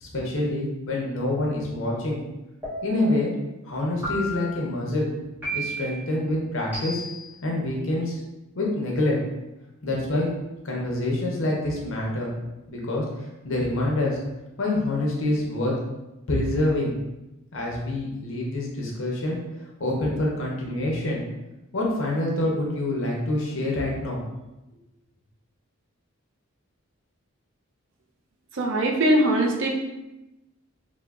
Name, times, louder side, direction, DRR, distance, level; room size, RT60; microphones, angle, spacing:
voice 1, 0.0-2.2 2.8-3.3 3.6-5.1 5.5-7.0 7.4-8.2 8.6-9.2 9.8-10.3 10.6-12.3 12.7-13.0 13.4-14.2 14.6-15.7 16.3-16.9 17.5-19.4 19.8-21.2 21.7-24.2, left 1 dB, 65° left, -2 dB, 0.7 m, -26 dB
sound 1, 2.6-3.2 4.0-4.6 5.4-6.0 6.7-7.3, right 1 dB, 5° right, 0.7 m, -32 dB
voice 2, 28.5-29.7, right 1 dB, 55° right, 1 dB, 0.4 m, -21 dB
3.5 x 2.0 x 2.3 m, 0.99 s
head